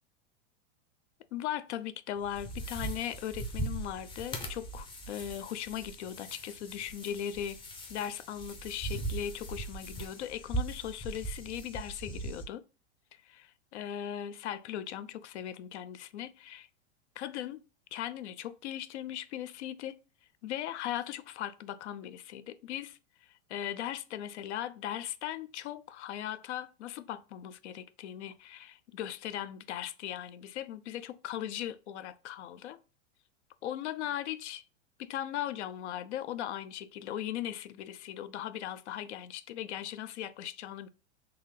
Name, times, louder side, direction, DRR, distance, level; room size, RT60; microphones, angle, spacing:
voice 1, 1.3-7.6 7.9-12.6 13.2-16.7 17.2-17.6 17.9-20.0 20.4-32.8 33.6-34.6 35.0-40.9, left 11 dB, 80° left, 0.5 m, -38 dB
sound 1, 2.2-12.4, right 2 dB, 15° left, 0.5 m, -40 dB
3.8 x 2.8 x 3.2 m
supercardioid pair, 140°, 34 cm